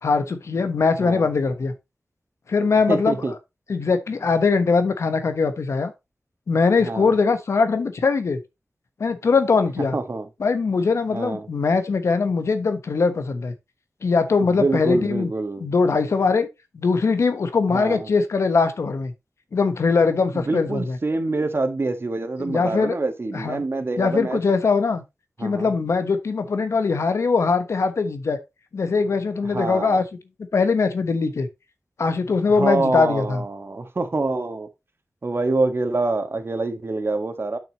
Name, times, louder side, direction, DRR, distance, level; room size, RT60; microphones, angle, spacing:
voice 1, 0.0-1.7 2.5-3.2 3.7-5.9 6.5-8.4 9.0-10.0 10.4-13.5 14.0-15.3 15.6-16.5 16.7-19.1 19.5-21.0 22.4-23.0 23.3-23.6 24.0-25.0 25.4-28.4 28.7-30.0 30.5-31.5 32.0-33.4, left 4 dB, 85° left, 1.2 m, -21 dB
voice 2, 2.9-3.3 6.8-7.1 9.9-10.3 11.1-11.5 14.4-15.6 17.7-18.1 20.3-24.4 25.4-25.7 29.5-30.0 32.5-34.7 35.2-37.6, right 3 dB, 55° right, 1.6 m, -26 dB
8.8 x 6.0 x 3.0 m
cardioid pair, 45°, 5 cm